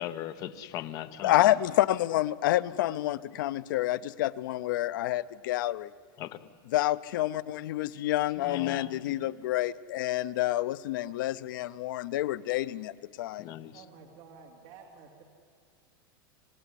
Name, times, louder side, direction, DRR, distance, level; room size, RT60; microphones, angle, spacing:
voice 1, 0.0-1.6 6.2-6.5 8.4-9.2 13.4-13.7, left 12 dB, 30° left, 0.9 m, -39 dB
voice 2, 1.2-5.9 6.7-12.9 13.2-13.5, left 15 dB, 60° left, 0.6 m, -28 dB
voice 3, 13.7-15.2, right 5 dB, 35° right, 2.8 m, -51 dB
26.5 x 17.0 x 9.9 m
supercardioid pair, 175°, 12 cm